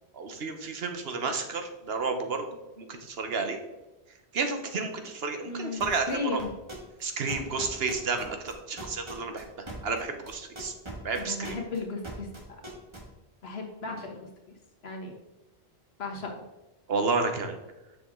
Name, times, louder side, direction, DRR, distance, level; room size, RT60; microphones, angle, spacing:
voice 1, 0.1-3.6 4.3-6.4 7.0-9.5 9.8-10.7 11.0-11.6 16.9-17.6, right 4 dB, 70° right, 6 dB, 1.2 m, -31 dB
voice 2, 5.4-6.5 11.0-12.3 13.4-14.5 14.8-15.1 16.0-16.4, left 3 dB, 70° left, 2 dB, 1.5 m, -35 dB
sound 1, 5.8-6.1 6.4-7.0 7.3-13.0, right 1 dB, 25° right, 1.5 m, -41 dB
6.9 x 6.1 x 3.6 m, 1.0 s
omnidirectional pair, 1.1 m